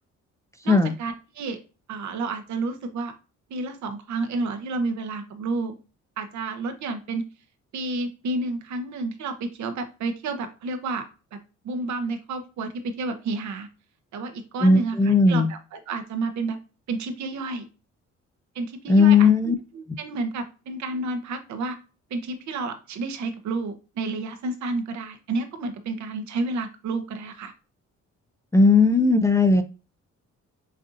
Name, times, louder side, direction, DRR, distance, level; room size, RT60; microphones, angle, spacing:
voice 1, 0.6-1.6 1.9-3.1 3.5-5.7 6.2-7.3 7.7-11.4 11.6-13.7 14.1-16.6 16.9-17.7 18.5-21.8 22.1-27.5, right 3 dB, 70° right, 7 dB, 0.9 m, -30 dB
voice 2, 14.6-15.5 18.9-19.6 28.5-29.6, left 4 dB, 10° left, 7 dB, 0.4 m, -17 dB
6.3 x 2.7 x 2.5 m, 0.32 s
cardioid pair, 90°, 30 cm